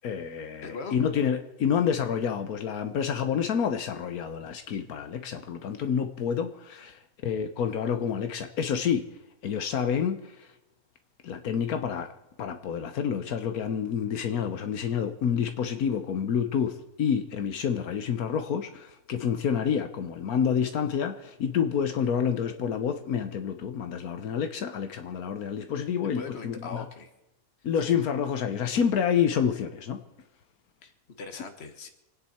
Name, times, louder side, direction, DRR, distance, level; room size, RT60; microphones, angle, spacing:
voice 1, 0.0-9.1 9.4-10.5 11.2-12.1 12.4-26.9 27.6-30.0, left 7 dB, 80° left, 7 dB, 1.4 m, -28 dB
voice 2, 0.6-1.0 26.1-27.1 30.8-31.9, left 4 dB, 45° left, 7 dB, 1.6 m, -40 dB
26.5 x 9.6 x 4.3 m, 0.94 s
omnidirectional pair, 1.5 m